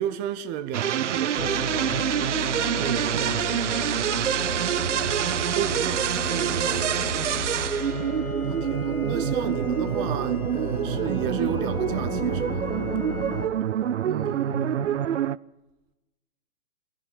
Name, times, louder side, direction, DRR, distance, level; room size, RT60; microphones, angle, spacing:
voice 1, 0.0-2.7 5.0-6.9 8.4-12.7, right 10 dB, 20° right, 0.8 m, -33 dB
sound 1, 0.7-15.4, right 10 dB, 55° right, 0.6 m, -26 dB
sound 2, 1.4-13.5, left 3 dB, 80° left, 1.8 m, -33 dB
voice 2, 2.7-4.1 5.1-5.5 6.8-7.0 14.0-14.9, right 6 dB, 40° right, 1.8 m, -34 dB
23.0 x 16.5 x 7.3 m
figure-of-eight pair, 120°, 43 cm